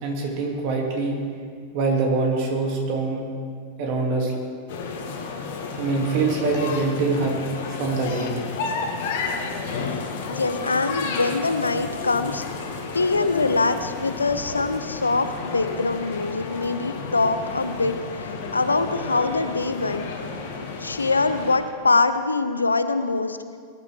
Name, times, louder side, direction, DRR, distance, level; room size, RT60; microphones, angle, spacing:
voice 1, 0.0-1.2 1.7-3.2 3.8-4.3 5.8-7.4 7.7-8.3, right 3 dB, 45° right, 0 dB, 2.7 m, -24 dB
sound 1, 4.7-21.6, left 4 dB, 55° left, 1.7 m, -32 dB
voice 2, 10.3-12.4 12.9-20.1 20.8-23.6, left 3 dB, 80° left, 10 dB, 0.7 m, -23 dB
19.5 x 11.0 x 3.6 m, 2.2 s
figure-of-eight pair, 90°, 0 cm